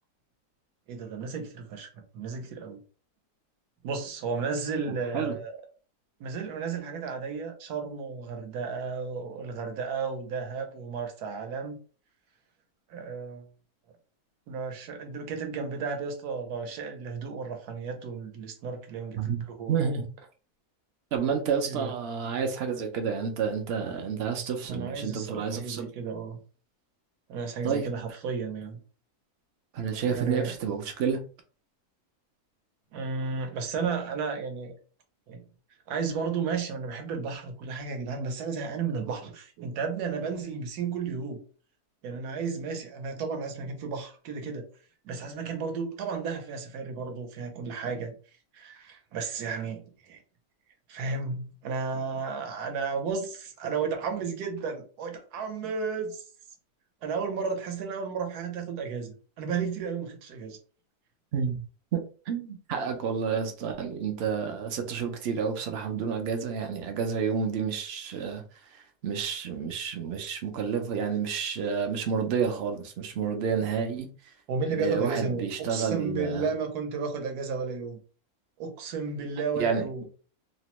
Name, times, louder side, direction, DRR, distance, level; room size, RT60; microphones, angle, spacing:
voice 1, 0.9-2.8 3.8-5.5 6.2-11.8 12.9-13.5 14.5-19.8 21.7-21.9 24.7-26.4 27.3-28.8 30.1-30.5 32.9-34.7 35.3-35.4 35.9-41.4 42.0-44.7 45.0-48.1 48.5-50.2 50.9-56.2 57.0-60.6 74.5-78.0 78.6-80.0, right 5 dB, 85° right, 1.2 m, -33 dB
voice 2, 4.9-5.4 19.2-19.4 19.7-20.0 21.1-25.9 27.6-27.9 29.7-31.2 61.3-61.6 61.9-68.4 68.7-74.3 74.7-76.5 79.6-80.0, right 6 dB, 70° right, 0.6 m, -30 dB
2.8 x 2.1 x 2.9 m
omnidirectional pair, 1.6 m